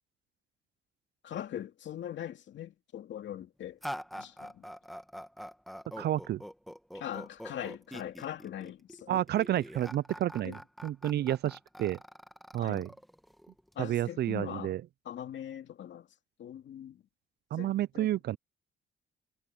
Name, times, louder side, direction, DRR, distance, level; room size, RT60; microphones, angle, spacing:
voice 1, 1.2-3.8 4.2-4.7 6.9-9.2 10.4-10.6 12.6-12.8 13.8-14.8 15.0-16.1 16.4-17.0 17.6-18.1, left 10 dB, 70° left, 2.5 m, -41 dB
sound 1, 3.8-13.7, equal, ahead, 2.0 m, -44 dB
voice 2, 6.0-6.4 9.1-12.0 12.5-12.9 13.8-14.8 17.5-18.4, right 13 dB, 55° right, 0.4 m, -30 dB
cardioid pair, 90°, 20 cm